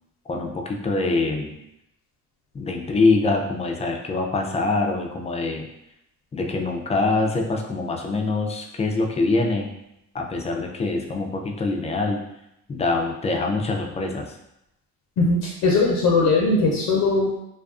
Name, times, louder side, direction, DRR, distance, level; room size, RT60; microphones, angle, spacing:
voice 1, 0.3-1.6 2.5-5.7 6.3-9.7 10.1-12.2 12.7-14.3, left 3 dB, 20° left, 2 dB, 0.3 m, -24 dB
voice 2, 15.2-17.4, left 3 dB, 80° left, -3 dB, 0.6 m, -20 dB
2.4 x 2.3 x 2.4 m, 0.85 s
cardioid pair, 90°, 30 cm